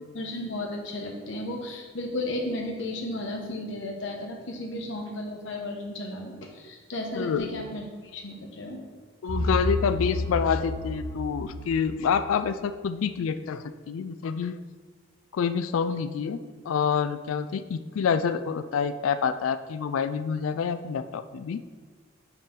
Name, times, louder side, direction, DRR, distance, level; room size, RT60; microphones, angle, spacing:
voice 1, 0.1-7.8 8.1-8.8, left 1 dB, 65° left, 2 dB, 1.1 m, -34 dB
voice 2, 7.2-7.5 9.2-14.6 15.3-16.4 16.6-21.6, left 6 dB, 80° left, 11 dB, 0.3 m, -27 dB
sound 1, 9.3-12.4, left 2 dB, 90° right, 1.6 m, -31 dB
6.0 x 4.6 x 5.2 m, 1.5 s
head